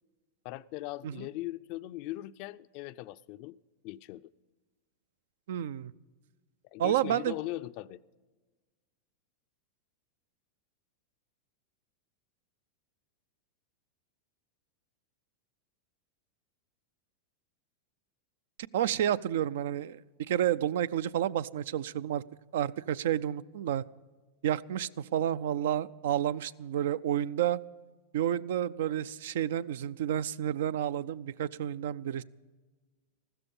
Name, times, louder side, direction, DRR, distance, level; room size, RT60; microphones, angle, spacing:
voice 1, 0.4-3.6 3.8-4.3 6.6-8.0, left 16 dB, 55° left, 0.4 m, -40 dB
voice 2, 5.5-5.9 6.8-7.3 18.7-20.0 20.3-22.2 22.5-23.8 24.4-27.6 28.1-32.2, right 11 dB, 75° right, 0.4 m, -30 dB
14.5 x 13.5 x 5.4 m
hypercardioid pair, 115°, 0 cm